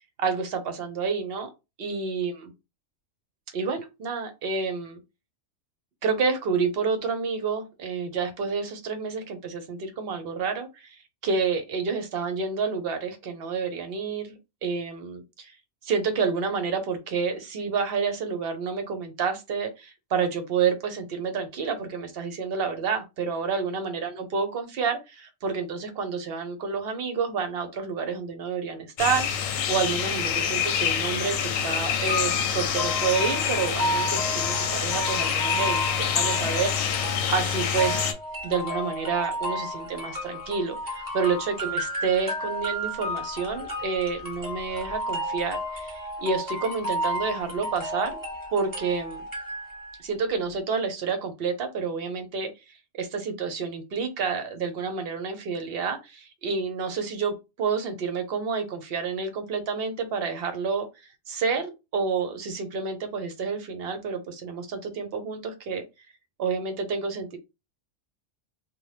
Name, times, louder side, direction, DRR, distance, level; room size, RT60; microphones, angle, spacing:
voice 1, 0.0-1.5 1.8-2.5 3.5-5.0 6.0-15.6 15.8-38.1 38.4-48.2 48.5-49.2 50.0-65.8 66.4-67.4, right 5 dB, 60° right, 7 dB, 0.7 m, -29 dB
sound 1, 29.0-38.1, left 8 dB, 90° left, 1.0 m, -26 dB
sound 2, 32.1-50.0, equal, 20° right, 0.8 m, -32 dB
2.7 x 2.2 x 3.2 m, 0.25 s
omnidirectional pair, 1.3 m